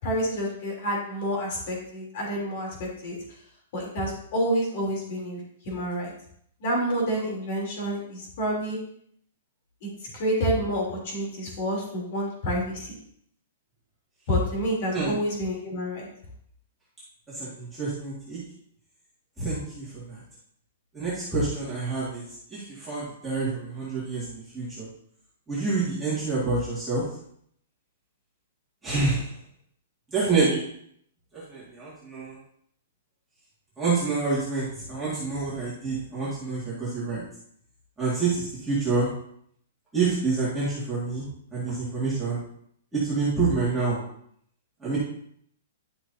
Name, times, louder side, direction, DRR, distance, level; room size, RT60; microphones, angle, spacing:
voice 1, 0.0-3.1 3.7-6.1 6.6-8.8 9.8-13.0 14.3-16.1, equal, 40° left, -2 dB, 3.0 m, -28 dB
voice 2, 17.3-18.4 19.4-20.2 20.9-24.9 25.5-27.0 28.8-29.3 30.1-30.6 31.3-32.4 33.8-37.2 38.0-39.1 39.9-41.3 41.5-42.4 42.9-44.0 44.8-45.0, right 4 dB, 5° right, -11 dB, 1.9 m, -27 dB
11.0 x 6.1 x 2.7 m, 0.68 s
hypercardioid pair, 175°, 0 cm